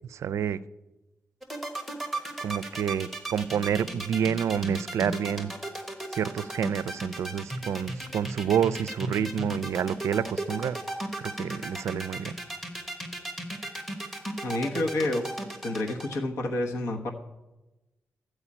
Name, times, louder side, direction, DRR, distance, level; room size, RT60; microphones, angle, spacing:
voice 1, 0.1-0.6 2.4-5.5 6.1-10.8 11.2-12.3, right 8 dB, 85° right, 0.4 m, -28 dB
sound 1, 1.4-16.2, right 1 dB, ahead, 1.2 m, -35 dB
voice 2, 14.4-15.2 15.6-17.1, left 2 dB, 85° left, 1.1 m, -29 dB
12.5 x 4.8 x 8.6 m
wide cardioid pair, 180°, 5 cm